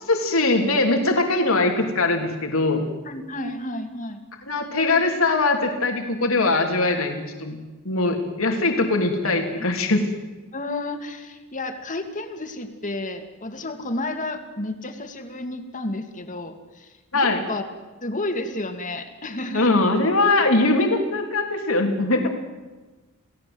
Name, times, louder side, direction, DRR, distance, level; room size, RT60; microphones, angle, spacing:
voice 1, 0.1-2.8 4.5-7.6 7.8-10.0 17.1-17.4 19.5-22.3, left 2 dB, 85° left, 3 dB, 3.3 m, -21 dB
voice 2, 3.0-4.2 10.5-17.7 18.0-19.8 22.2-22.3, left 2 dB, 40° left, 6 dB, 2.5 m, -31 dB
29.0 x 17.5 x 8.0 m, 1.2 s
head